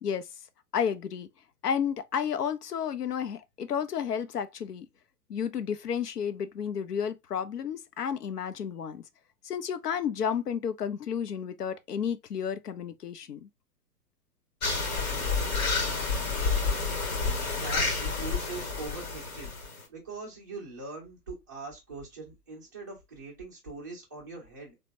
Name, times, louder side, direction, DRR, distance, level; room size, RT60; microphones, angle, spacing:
voice 1, 0.7-1.3 1.6-4.9 5.3-9.0 9.4-13.5, left 7 dB, 80° left, 0.6 m, -32 dB
sound 1, 14.6-19.8, left 4 dB, 65° left, 1.1 m, -29 dB
voice 2, 17.5-19.5 19.9-24.7, right 3 dB, 15° right, 0.4 m, -42 dB
3.2 x 2.1 x 2.8 m
figure-of-eight pair, 115°, 46 cm